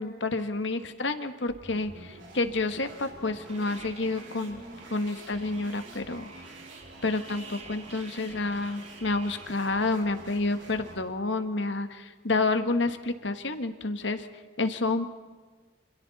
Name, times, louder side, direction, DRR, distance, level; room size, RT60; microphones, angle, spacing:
voice 1, 0.0-4.6 4.9-6.3 7.0-14.3 14.6-15.1, left 3 dB, 75° left, 8 dB, 1.6 m, -29 dB
sound 1, 1.5-11.1, right 2 dB, 85° right, 5.4 m, -49 dB
sound 2, 3.5-9.5, right 3 dB, 35° right, 2.3 m, -48 dB
28.0 x 26.5 x 4.2 m, 1.4 s
head